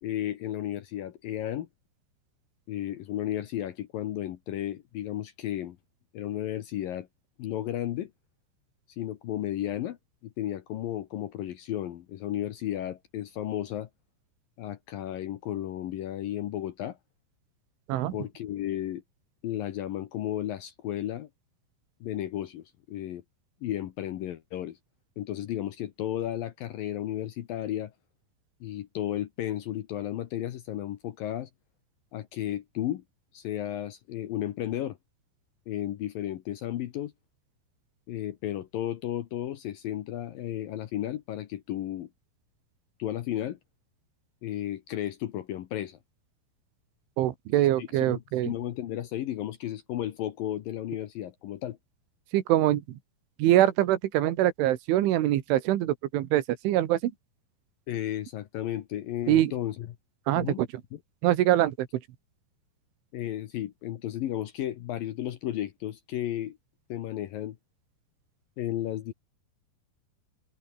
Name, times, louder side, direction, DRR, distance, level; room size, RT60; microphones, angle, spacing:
voice 1, 0.0-1.7 2.7-5.8 6.1-7.1 7.4-8.1 9.0-10.0 10.2-13.9 14.6-17.0 18.1-19.0 19.4-21.3 22.0-23.2 23.6-24.8 25.2-27.9 28.6-31.5 32.1-33.0 33.3-35.0 35.7-37.1 38.1-42.1 43.0-43.6 44.4-46.0 47.5-51.8 57.9-60.0 60.4-60.6 60.9-61.0 63.1-66.6 66.9-67.6 68.6-69.1, left 12 dB, 70° left, 2.3 m, -33 dB
voice 2, 47.2-48.5 52.3-53.0 53.4-57.1 59.3-59.5 60.3-60.7 61.2-61.9, right 14 dB, 90° right, 4.1 m, -24 dB
open air
omnidirectional pair, 5.3 m